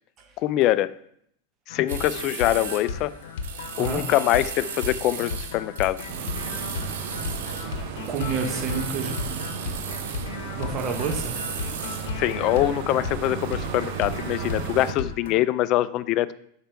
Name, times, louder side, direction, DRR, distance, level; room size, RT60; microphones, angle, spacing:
voice 1, 0.4-0.9 1.7-3.1 3.8-6.0 12.2-16.3, left 14 dB, 40° left, 16 dB, 0.3 m, -24 dB
sound 1, 1.7-15.4, left 5 dB, 75° left, 0.9 m, -35 dB
sound 2, 1.9-12.2, right 7 dB, 85° right, 0.9 m, -37 dB
voice 2, 3.8-4.1 8.1-9.4 10.6-11.5, right 5 dB, 30° right, 1 dB, 0.9 m, -30 dB
sound 3, 6.1-14.9, right 7 dB, 55° right, 0.7 m, -35 dB
6.6 x 4.5 x 4.5 m, 0.70 s
supercardioid pair, 145°, 0 cm